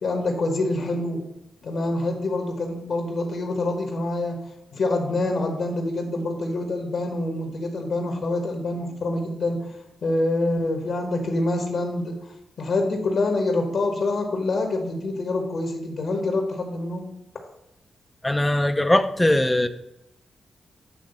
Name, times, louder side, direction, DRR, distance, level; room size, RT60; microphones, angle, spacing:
voice 1, 0.0-1.2 1.6-4.4 4.7-9.6 10.0-12.2 12.6-17.1, left 2 dB, 70° left, 2 dB, 1.3 m, -26 dB
voice 2, 18.2-19.7, left 1 dB, 10° left, 9 dB, 0.6 m, -20 dB
8.7 x 3.2 x 5.3 m, 0.88 s
cardioid pair, 75°, 0 cm